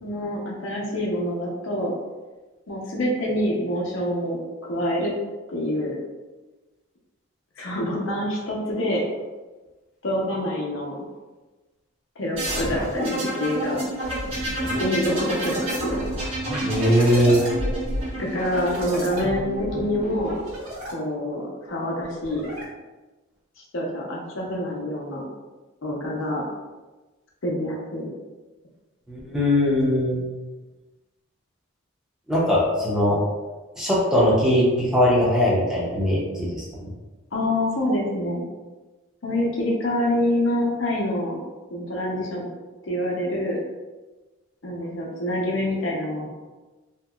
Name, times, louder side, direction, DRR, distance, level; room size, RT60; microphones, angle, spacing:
voice 1, 0.0-1.9 2.7-5.1 5.5-5.9 7.6-9.0 10.0-11.0 12.2-13.8 14.8-16.0 18.2-20.4 20.9-22.5 23.7-25.2 25.8-26.5 27.4-28.1 37.3-38.4 39.2-41.4 41.7-42.5 42.9-43.6 44.6-46.3, left 1 dB, 65° left, -3 dB, 0.6 m, -26 dB
sound 1, 12.3-20.9 22.0-22.6, right 1 dB, 80° right, 1.3 m, -29 dB
voice 2, 16.6-17.5 29.1-30.2 32.3-33.2 33.8-36.9, equal, ahead, -7 dB, 0.5 m, -20 dB
2.8 x 2.8 x 2.3 m, 1.2 s
head